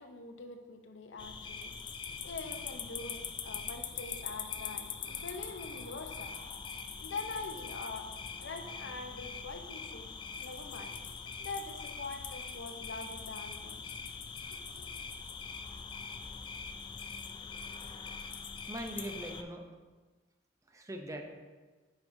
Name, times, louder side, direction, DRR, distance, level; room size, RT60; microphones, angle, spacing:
voice 1, 0.0-1.7 2.2-6.3 7.0-8.1 8.4-10.1 10.4-10.9 11.4-14.0 14.5-14.8, left 3 dB, 80° left, 5 dB, 0.7 m, -44 dB
sound 1, 1.2-19.4, left 6 dB, 25° left, 0.3 m, -43 dB
voice 2, 18.7-19.7 20.7-21.3, right 1 dB, 15° right, 3 dB, 0.6 m, -41 dB
9.2 x 5.3 x 2.7 m, 1.3 s
head